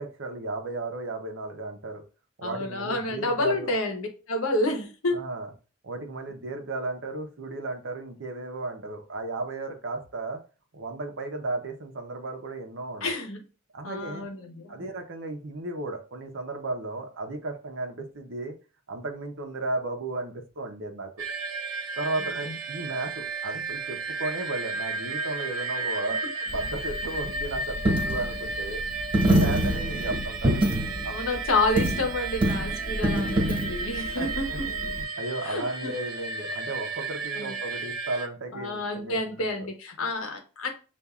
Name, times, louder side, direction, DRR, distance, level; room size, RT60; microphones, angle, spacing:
voice 1, 0.0-2.0 2.4-3.7 5.1-5.5 5.8-10.4 10.7-13.1 13.7-14.3 14.7-18.5 18.9-21.2 22.0-28.8 29.3-31.2 34.2-34.3 34.6-39.5, right 2 dB, 65° right, 4 dB, 0.8 m, -34 dB
voice 2, 2.4-5.2 13.0-13.4 13.8-14.9 22.4-22.5 31.1-34.5 35.4-35.9 37.3-37.5 38.5-40.7, left 2 dB, 75° left, 4 dB, 0.9 m, -29 dB
sound 1, 21.2-38.3, right 3 dB, 90° right, 0.8 m, -33 dB
Coin (dropping), 26.5-35.0, right 1 dB, 25° right, 1.4 m, -27 dB
6.8 x 2.5 x 2.4 m, 0.34 s
head